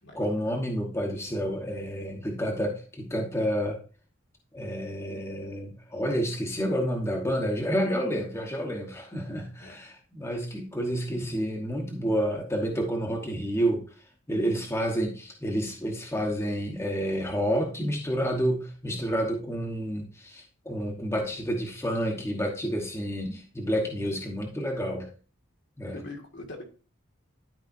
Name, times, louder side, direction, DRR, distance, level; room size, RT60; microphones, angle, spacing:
voice 1, 0.1-3.8 4.5-13.8 14.3-25.1 25.8-25.9, equal, 15° left, 0 dB, 1.0 m, -29 dB
voice 2, 25.9-26.6, left 2 dB, 55° left, 2 dB, 1.6 m, -42 dB
12.0 x 4.8 x 2.6 m, 0.36 s
head